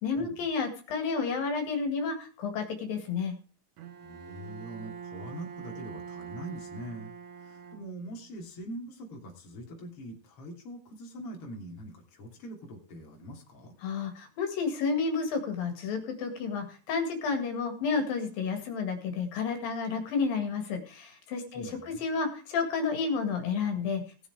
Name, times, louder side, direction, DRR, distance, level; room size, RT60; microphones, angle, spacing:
voice 1, 0.0-3.3 13.8-24.0, left 5 dB, 80° left, 5 dB, 3.8 m, -31 dB
Bowed string instrument, 3.8-8.3, right 7 dB, 70° right, 2.4 m, -44 dB
voice 2, 4.0-7.1 7.4-13.8 21.5-22.0, right 1 dB, 40° left, 1 dB, 3.6 m, -43 dB
18.5 x 7.0 x 4.7 m, 0.39 s
omnidirectional pair, 4.0 m